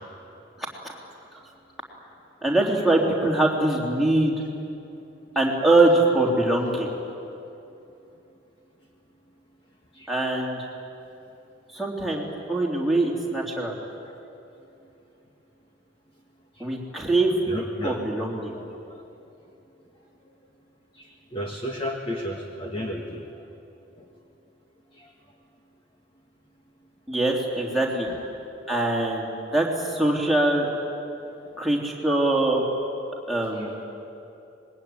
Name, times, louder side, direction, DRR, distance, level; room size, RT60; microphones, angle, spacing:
voice 1, 0.6-0.9 2.4-4.3 5.3-6.9 10.1-10.6 11.7-13.7 16.6-17.3 17.8-18.5 27.1-28.1 28.7-29.3 29.5-30.7 31.6-32.6 33.3-33.8, right 2 dB, ahead, -3 dB, 3.3 m, -23 dB
voice 2, 17.5-18.0 18.5-18.6 21.0-23.2 24.0-24.1 25.0-25.1 28.1-28.2 33.5-33.7, equal, 25° left, 0 dB, 1.7 m, -33 dB
25.0 x 21.0 x 9.5 m, 2.8 s
head